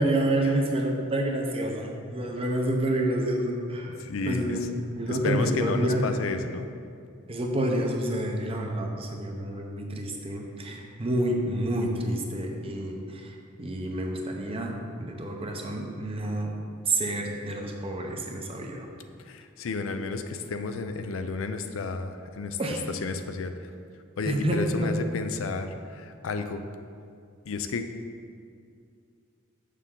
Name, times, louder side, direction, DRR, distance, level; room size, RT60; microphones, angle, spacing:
voice 1, 0.0-4.0 4.3-4.6 4.9-6.0 7.3-16.5 16.9-18.9 22.6-22.8 24.2-25.0, right 1 dB, 30° right, 1 dB, 0.7 m, -28 dB
voice 2, 4.0-4.7 5.1-6.7 19.3-22.6 22.9-23.5 24.2-26.7 27.4-27.9, left 4 dB, 80° left, 8 dB, 0.5 m, -32 dB
6.6 x 6.5 x 3.7 m, 2.3 s
head